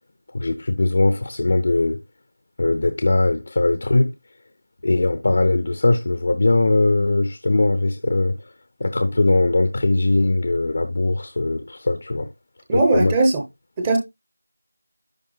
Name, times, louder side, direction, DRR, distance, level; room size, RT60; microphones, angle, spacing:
voice 1, 0.3-2.0 2.6-4.1 4.8-8.4 8.8-12.3 12.7-13.1, left 2 dB, 35° left, 0.7 m, -20 dB
voice 2, 12.7-13.4 13.8-14.0, right 2 dB, 10° right, 0.8 m, -18 dB
10.5 x 3.6 x 4.0 m
figure-of-eight pair, 170°, 0 cm